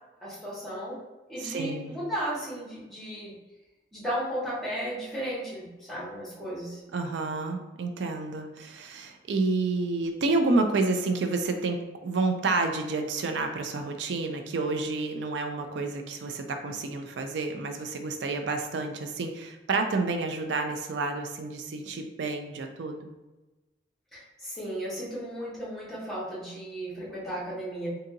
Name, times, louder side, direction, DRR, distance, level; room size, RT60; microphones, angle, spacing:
voice 1, 0.2-1.0 1.3-3.3 3.9-6.8 24.1-27.9, right 1 dB, ahead, -7 dB, 1.1 m, -35 dB
voice 2, 1.4-1.9 6.9-23.1, right 3 dB, 80° right, 5 dB, 0.4 m, -29 dB
2.7 x 2.7 x 3.7 m, 1.1 s
head